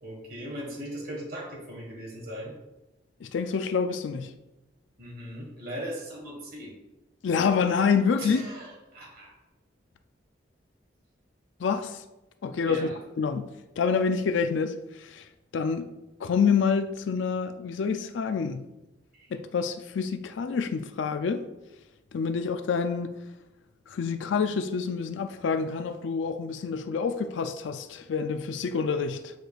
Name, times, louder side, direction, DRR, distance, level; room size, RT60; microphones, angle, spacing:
voice 1, 0.0-2.5 5.0-6.7 8.2-9.3 12.7-13.0 19.1-19.3, equal, 55° right, 1.6 m, -39 dB
voice 2, 3.2-4.3 7.2-8.4 11.6-12.0 12.4-12.9 13.2-13.5 13.8-15.3 15.5-16.0 16.2-18.6 19.3-21.4 22.1-23.1 23.9-29.3, left 5 dB, 85° left, 0.4 m, -27 dB
8.0 x 4.9 x 2.4 m
head